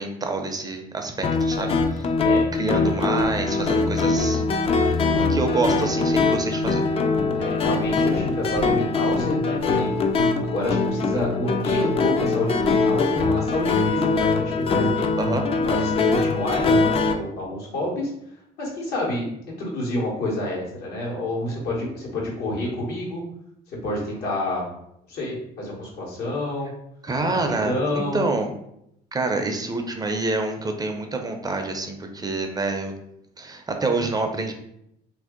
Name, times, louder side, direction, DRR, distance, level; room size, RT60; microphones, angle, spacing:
voice 1, 0.0-2.1 2.5-4.4 4.8-4.9 5.3-6.9 11.1-11.3 15.2-15.4 27.0-28.5 29.1-32.9 33.4-34.5, right 3 dB, 25° right, 4 dB, 0.4 m, -27 dB
sound 1, 1.2-17.1, left 3 dB, 35° left, 0.4 m, -22 dB
voice 2, 2.2-2.9 7.4-9.9 10.4-15.1 15.6-18.1 18.6-19.3 19.6-23.2 23.7-24.7 25.1-26.7 27.2-28.3, left 1 dB, 75° left, -3 dB, 1.4 m, -28 dB
2.8 x 2.6 x 3.7 m, 0.76 s
cardioid pair, 110°, 17 cm